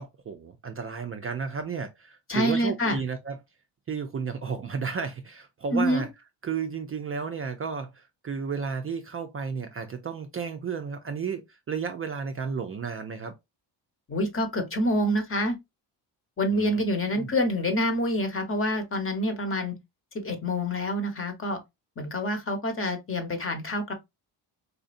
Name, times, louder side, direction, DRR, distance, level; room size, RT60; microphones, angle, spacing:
voice 1, 0.0-3.4 3.9-6.1 6.4-13.3 16.5-16.8 17.1-17.3, right 6 dB, 35° right, 0.4 m, -33 dB
voice 2, 2.3-3.0 5.7-6.1 14.1-15.5 16.4-19.7 20.2-21.6 22.0-23.9, equal, 30° left, 1.0 m, -27 dB
4.2 x 2.6 x 2.4 m
cardioid pair, 115°, 43 cm